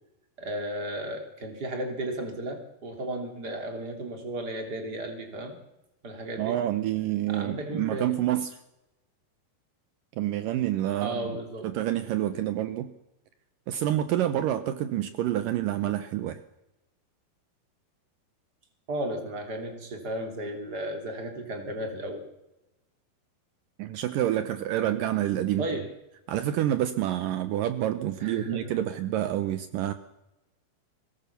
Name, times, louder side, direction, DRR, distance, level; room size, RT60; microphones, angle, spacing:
voice 1, 0.4-5.6 6.0-6.6 7.3-8.2 11.0-11.7 18.9-22.2 25.6-25.9 28.2-28.7, right 1 dB, 25° right, 5 dB, 3.1 m, -34 dB
voice 2, 6.4-8.6 10.2-11.4 11.6-12.9 13.7-16.4 23.8-25.7 26.3-29.9, right 12 dB, 80° right, 11 dB, 1.9 m, -28 dB
23.5 x 18.0 x 6.9 m, 0.95 s
omnidirectional pair, 5.1 m